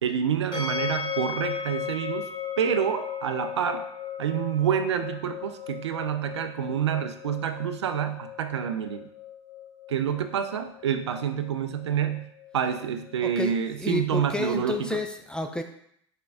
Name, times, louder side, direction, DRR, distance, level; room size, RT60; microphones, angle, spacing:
voice 1, 0.0-2.3 2.6-3.9 4.2-9.1 9.9-15.0, right 8 dB, 75° right, 8 dB, 0.4 m, -28 dB
sound 1, 0.5-13.5, left 7 dB, 30° left, 1.1 m, -37 dB
voice 2, 13.2-13.5 13.8-15.6, left 2 dB, 5° left, 5 dB, 0.3 m, -30 dB
4.3 x 3.6 x 2.5 m, 0.69 s
figure-of-eight pair, 80°, 15 cm